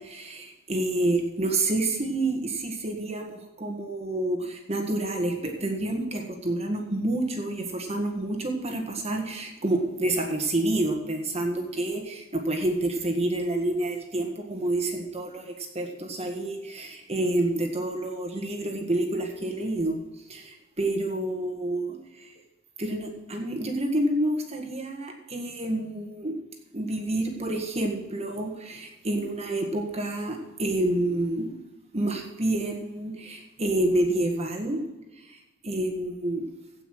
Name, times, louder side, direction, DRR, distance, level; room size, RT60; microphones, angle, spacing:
voice 1, 0.0-22.3 22.8-26.4 26.7-31.5 31.9-34.8 35.1-36.4, right 1 dB, 30° right, 3 dB, 1.8 m, -28 dB
16.5 x 5.9 x 6.3 m, 1.0 s
head